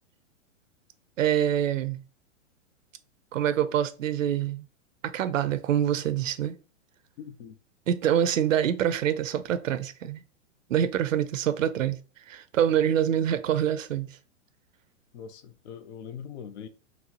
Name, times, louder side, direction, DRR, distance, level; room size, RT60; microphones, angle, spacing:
voice 1, 1.2-2.0 3.3-4.6 5.0-6.6 7.9-10.2 10.7-12.0 12.3-14.1, right 10 dB, 90° right, 0.5 m, -25 dB
voice 2, 7.2-7.6 15.1-16.7, left 8 dB, 60° left, 0.6 m, -42 dB
3.9 x 2.0 x 2.8 m
hypercardioid pair, 130°, 38 cm